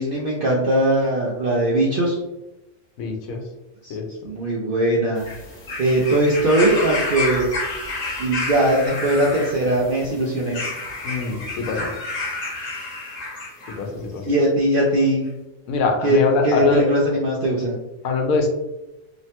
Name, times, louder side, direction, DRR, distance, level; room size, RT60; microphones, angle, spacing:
voice 1, 0.0-2.2 3.8-3.9 4.2-5.2 5.8-7.5 8.2-10.6 14.2-15.2 16.0-16.2 16.4-17.8, right 1 dB, 70° right, -3 dB, 0.5 m, -20 dB
voice 2, 3.0-3.4 3.9-4.1 11.0-11.9 13.8-14.3 15.7-16.9 18.0-18.5, left 3 dB, 80° left, 3 dB, 1.0 m, -23 dB
sound 1, 5.2-13.8 14.7-14.8, left 2 dB, 45° left, 1.0 m, -30 dB
3.0 x 2.1 x 2.8 m, 0.97 s
omnidirectional pair, 1.4 m